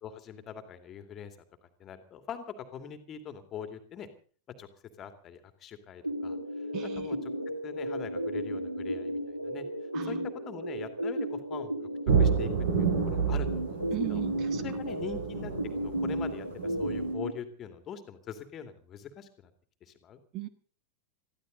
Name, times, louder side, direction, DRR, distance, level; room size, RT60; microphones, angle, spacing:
voice 1, 0.0-1.4 1.8-4.1 4.6-4.7 5.0-6.4 6.8-7.2 7.6-9.7 10.0-10.2 10.5-11.7 12.2-12.5 13.0-13.8 14.1-14.2 14.6-15.5 15.8-19.5 19.8-20.2, left 8 dB, 30° left, 8 dB, 2.5 m, -42 dB
sound 1, 6.0-17.3, right 1 dB, 90° right, 2.2 m, -34 dB
voice 2, 6.7-7.1 9.9-10.3 13.9-14.6 20.3-20.5, right 15 dB, 35° right, 11 dB, 1.5 m, -36 dB
sound 2, 12.1-17.1, right 6 dB, 60° right, 5.7 m, -30 dB
23.0 x 15.0 x 4.0 m, 0.42 s
figure-of-eight pair, 90°, 0 cm